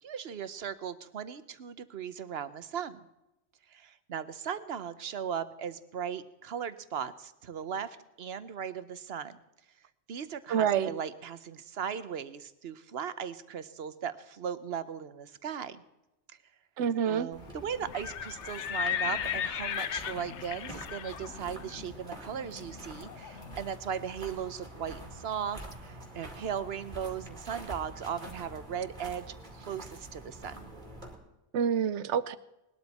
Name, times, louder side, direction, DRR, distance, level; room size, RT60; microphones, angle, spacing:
voice 1, 0.0-3.1 3.7-9.4 10.1-15.8 17.0-30.7, right 8 dB, 65° right, 1.0 m, -38 dB
voice 2, 10.5-10.9 16.8-17.3 31.5-32.4, right 8 dB, 85° right, 1.0 m, -27 dB
sound 1, 17.3-31.1, right 1 dB, 45° right, 2.7 m, -47 dB
Livestock farm animals working animals, 17.8-23.6, left 9 dB, 90° left, 1.1 m, -36 dB
20.0 x 12.5 x 4.2 m
omnidirectional pair, 1.2 m